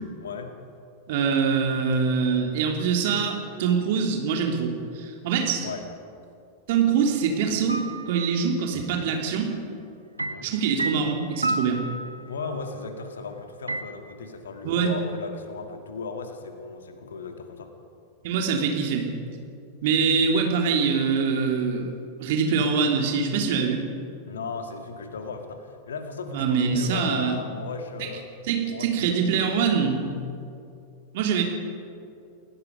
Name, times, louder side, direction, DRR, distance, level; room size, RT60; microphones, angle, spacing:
voice 1, 0.2-0.6 5.6-5.8 10.2-10.5 12.3-17.7 24.3-28.3 28.7-29.2, left 4 dB, 65° left, 5 dB, 2.1 m, -36 dB
voice 2, 1.1-5.7 6.7-9.5 10.4-11.8 14.6-14.9 18.2-19.1 19.8-21.9 22.2-23.8 26.3-27.4 28.0-28.1 28.5-30.2 31.1-31.4, right 6 dB, 50° right, 2 dB, 3.2 m, -24 dB
sound 1, 7.7-8.4 10.2-12.5 13.7-13.8, right 2 dB, 85° right, 1.1 m, -31 dB
29.0 x 17.0 x 5.4 m, 2.6 s
figure-of-eight pair, 90°, 0 cm